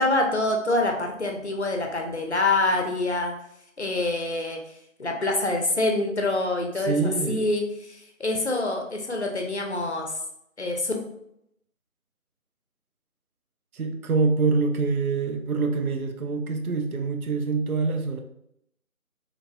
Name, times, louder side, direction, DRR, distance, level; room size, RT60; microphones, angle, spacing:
voice 1, 0.0-3.3 3.8-4.6 5.0-10.1 10.6-11.0, left 2 dB, 55° left, 2 dB, 0.5 m, -26 dB
voice 2, 6.8-7.4 13.7-18.2, right 4 dB, 85° right, 5 dB, 0.6 m, -25 dB
3.2 x 2.1 x 2.4 m, 0.76 s
figure-of-eight pair, 170°, 42 cm